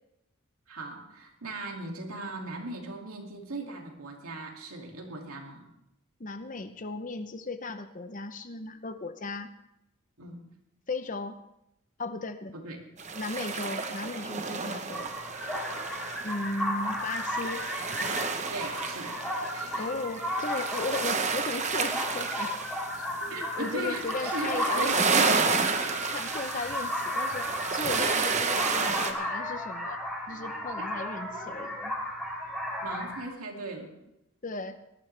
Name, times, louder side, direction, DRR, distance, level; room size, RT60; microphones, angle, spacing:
voice 1, 0.7-5.6 10.2-10.4 12.5-12.8 14.6-14.7 18.5-19.2 19.5-19.9 23.3-25.3 32.8-33.9, right 2 dB, 75° right, 1 dB, 2.5 m, -38 dB
voice 2, 6.2-9.6 10.9-11.4 12.0-12.5 13.1-15.1 16.2-17.7 19.8-22.5 22.9-25.6 26.1-30.0 30.3-31.9 34.4-34.8, left 3 dB, 35° left, 10 dB, 0.7 m, -36 dB
sound 1, 13.0-29.1, right 4 dB, 30° right, 1.0 m, -31 dB
sound 2, 14.9-33.3, left 1 dB, 5° left, 2.9 m, -34 dB
19.5 x 13.0 x 3.4 m, 0.85 s
head